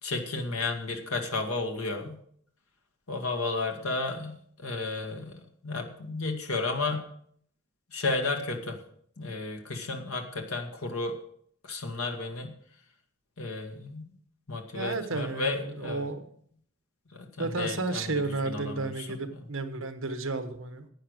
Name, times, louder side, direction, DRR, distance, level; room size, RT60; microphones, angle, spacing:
voice 1, 0.0-2.2 3.1-7.0 7.9-8.8 9.2-11.1 11.6-12.5 13.4-14.0 14.5-16.0 17.1-19.2, left 3 dB, 80° left, 3 dB, 1.9 m, -33 dB
voice 2, 14.7-16.2 17.4-20.9, right 3 dB, 65° right, 9 dB, 1.3 m, -32 dB
11.5 x 9.0 x 6.5 m, 0.64 s
head